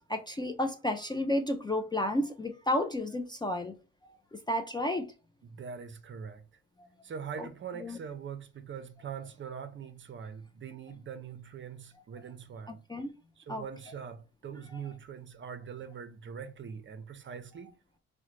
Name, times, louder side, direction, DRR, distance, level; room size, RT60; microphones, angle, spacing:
voice 1, 0.1-3.8 4.3-5.1 7.4-7.5 7.8-8.0 12.9-13.1 13.5-13.6, left 1 dB, 15° left, 0.4 m, -31 dB
voice 2, 5.4-6.4 7.0-12.8 13.4-17.7, right 7 dB, 40° right, 0.5 m, -43 dB
3.7 x 2.1 x 3.0 m
cardioid pair, 90°, 30 cm